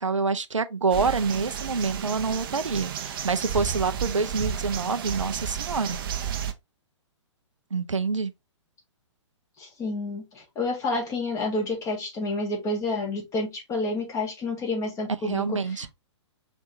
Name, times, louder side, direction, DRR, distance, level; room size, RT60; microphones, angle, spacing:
voice 1, 0.0-6.0 7.7-8.3 15.2-15.9, right 4 dB, 80° right, 0.6 m, -27 dB
sound 1, 0.9-6.5, right 8 dB, 45° right, 0.7 m, -32 dB
voice 2, 9.6-15.9, left 2 dB, 20° left, 1.8 m, -29 dB
5.0 x 3.5 x 2.6 m
figure-of-eight pair, 120°, 16 cm